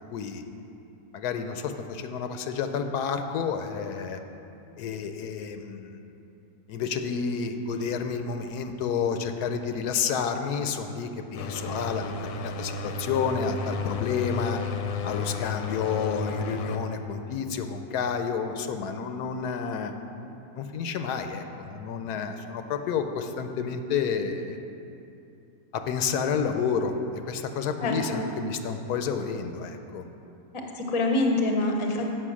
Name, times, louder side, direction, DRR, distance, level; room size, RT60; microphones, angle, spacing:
voice 1, 0.1-0.4 1.1-4.2 4.8-6.0 6.7-14.6 15.0-19.9 20.5-24.6 25.7-26.9 27.3-30.0, left 6 dB, 85° left, 7 dB, 1.2 m, -30 dB
sound 1, 11.4-16.8, left 4 dB, 70° left, 0.9 m, -33 dB
voice 2, 27.8-28.2 30.8-32.1, left 2 dB, 30° left, 2 dB, 0.6 m, -25 dB
7.7 x 6.2 x 6.1 m, 2.8 s
omnidirectional pair, 1.7 m